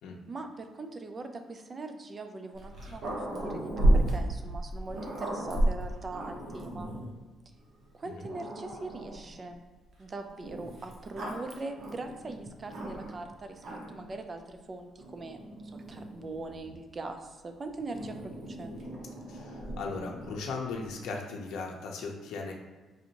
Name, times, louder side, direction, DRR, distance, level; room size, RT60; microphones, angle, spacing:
voice 1, 0.3-6.9 7.9-9.6 10.0-18.7, right 3 dB, 30° right, 6 dB, 0.4 m, -41 dB
Growling, 2.5-7.1 7.8-7.9 8.3-9.3 10.4-13.2 13.6-14.1 15.0-16.8 17.9-20.5, right 1 dB, 55° right, 0.9 m, -33 dB
voice 2, 19.3-22.5, left 4 dB, 80° left, 0 dB, 0.6 m, -37 dB
4.8 x 2.6 x 2.9 m, 1.3 s
cardioid pair, 110°, 0 cm